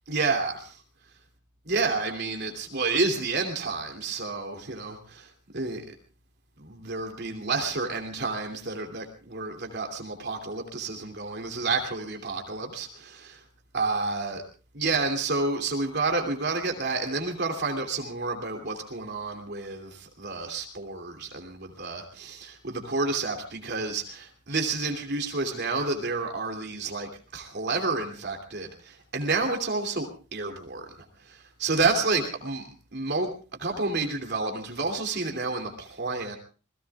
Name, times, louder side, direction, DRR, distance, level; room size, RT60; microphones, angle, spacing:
voice 1, 0.1-0.8 1.6-5.8 6.6-13.4 13.7-14.4 14.7-30.9 31.3-32.6 32.9-33.3 33.6-36.4, right 3 dB, 55° right, 4 dB, 2.8 m, -30 dB
28.0 x 20.0 x 2.4 m, 0.36 s
head